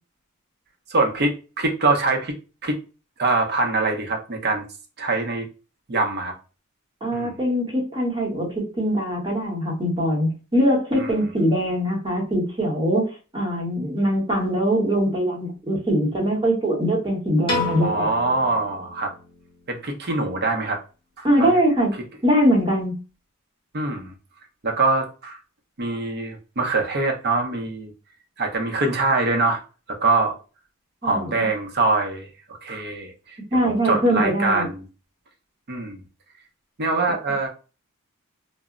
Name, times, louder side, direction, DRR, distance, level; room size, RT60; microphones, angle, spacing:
voice 1, 0.9-2.3 2.6-2.8 3.2-4.6 5.0-5.5 5.9-6.3 7.1-7.3 10.9-11.1 17.8-19.1 19.7-20.8 21.2-21.6 23.7-24.1 24.6-25.4 25.8-27.9 28.4-29.6 30.0-30.4 31.0-32.3 32.6-33.4 33.6-34.8 35.7-36.0 36.8-37.5, right 3 dB, 50° right, 2 dB, 0.6 m, -23 dB
voice 2, 7.0-13.1 13.3-18.1 21.2-21.9 22.2-23.0 31.0-31.5 33.5-34.7, equal, 20° right, -3 dB, 1.0 m, -22 dB
Piano, 17.5-19.7, left 2 dB, 25° left, 0.9 m, -30 dB
2.1 x 2.0 x 3.5 m, 0.33 s
head